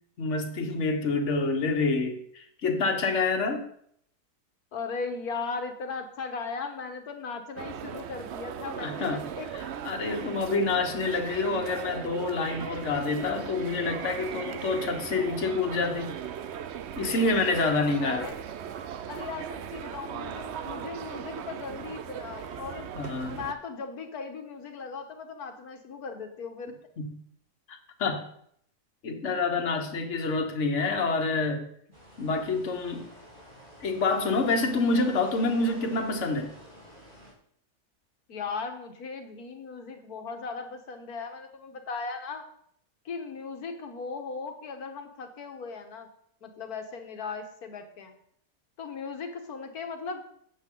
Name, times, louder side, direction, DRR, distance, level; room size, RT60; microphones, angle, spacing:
voice 1, 0.2-3.6 8.8-9.2 9.5-16.1 17.0-18.3 22.9-23.4 27.0-27.2 27.7-28.2 29.0-31.7 32.2-33.1 33.8-36.5, left 3 dB, 55° left, 4 dB, 1.6 m, -27 dB
voice 2, 4.7-9.5 18.0-18.4 19.1-22.9 23.3-26.8 38.3-42.5 43.0-46.1 46.4-48.1 48.8-50.2, left 4 dB, 85° left, 6 dB, 1.8 m, -37 dB
sound 1, 7.6-23.5, right 9 dB, 60° right, 0.8 m, -38 dB
sound 2, 31.9-37.3, equal, 35° right, 3.2 m, -49 dB
12.0 x 8.1 x 3.8 m, 0.68 s
omnidirectional pair, 1.6 m